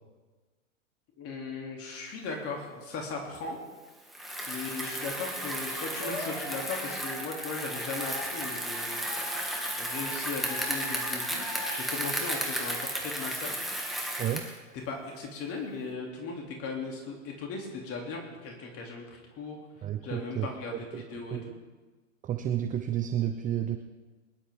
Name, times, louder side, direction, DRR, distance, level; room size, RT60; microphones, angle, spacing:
voice 1, 1.2-3.6 4.5-9.0 9.8-13.6 14.8-19.6 20.0-21.4, left 4 dB, 35° left, 0 dB, 3.2 m, -38 dB
Bicycle, 4.1-14.6, right 1 dB, ahead, 2.2 m, -34 dB
sound 1, 6.0-11.8, left 2 dB, 65° left, 3.5 m, -41 dB
voice 2, 19.8-21.6 22.2-23.8, right 10 dB, 20° right, 8 dB, 0.7 m, -32 dB
22.0 x 11.5 x 3.8 m, 1.3 s
hypercardioid pair, 100°, 38 cm